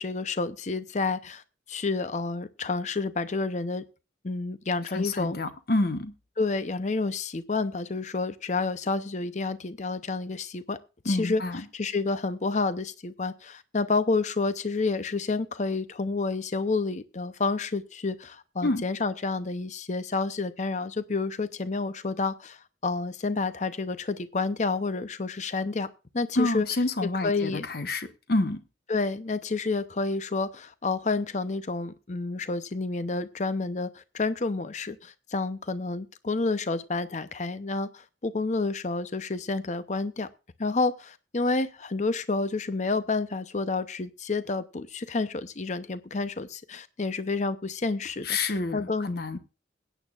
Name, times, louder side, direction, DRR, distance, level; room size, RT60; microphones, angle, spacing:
voice 1, 0.0-1.4 1.7-3.8 4.2-5.4 6.4-10.8 11.0-11.4 11.7-25.9 26.1-26.7 27.2-27.7 28.9-40.3 40.6-49.1, left 3 dB, 40° left, 0.7 m, -29 dB
voice 2, 4.9-6.1 11.0-11.6 18.6-18.8 26.3-28.6 48.2-49.4, left 2 dB, 55° left, 1.0 m, -28 dB
21.5 x 9.1 x 2.4 m
head